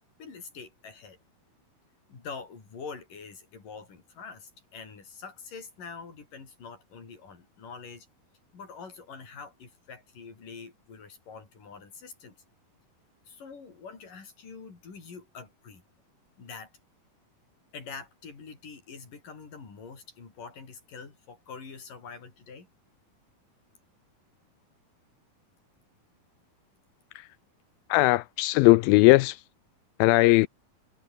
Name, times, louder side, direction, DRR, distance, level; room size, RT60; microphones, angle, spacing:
voice 1, 0.2-1.2 2.1-8.1 8.5-12.4 13.3-15.8 16.4-16.7 17.7-22.7, left 5 dB, 60° left, 7.2 m, -45 dB
voice 2, 27.9-29.4 30.0-30.5, left 21 dB, 80° left, 2.2 m, -19 dB
omnidirectional pair, 4.4 m